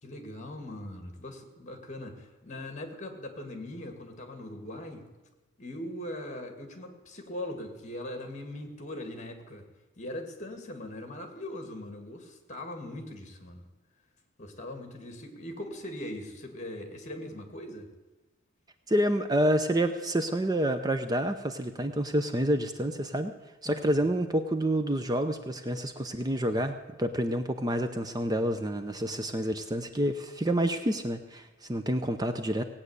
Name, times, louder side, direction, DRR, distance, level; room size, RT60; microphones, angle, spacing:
voice 1, 0.0-5.0 5.6-9.6 10.0-13.6 14.4-17.9 23.6-24.1, left 1 dB, 35° left, 5 dB, 2.3 m, -40 dB
voice 2, 18.9-23.3 23.6-32.6, right 1 dB, 20° right, 8 dB, 0.7 m, -28 dB
18.0 x 8.8 x 8.2 m, 1.1 s
head